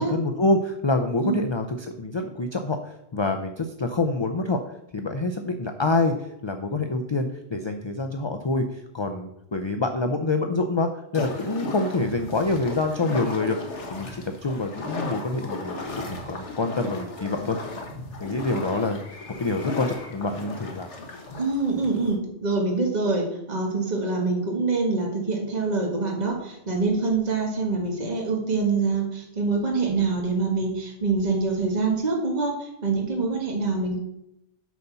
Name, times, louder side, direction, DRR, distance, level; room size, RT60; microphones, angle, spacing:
voice 1, 0.0-4.6 4.9-13.6 13.9-17.6 18.2-20.9, left 2 dB, 35° left, 5 dB, 0.4 m, -26 dB
sound 1, 11.1-22.2, left 2 dB, 70° left, 1.7 m, -35 dB
voice 2, 21.4-34.0, right 3 dB, 35° right, 0 dB, 1.6 m, -25 dB
9.2 x 4.1 x 6.9 m, 0.82 s
omnidirectional pair, 1.2 m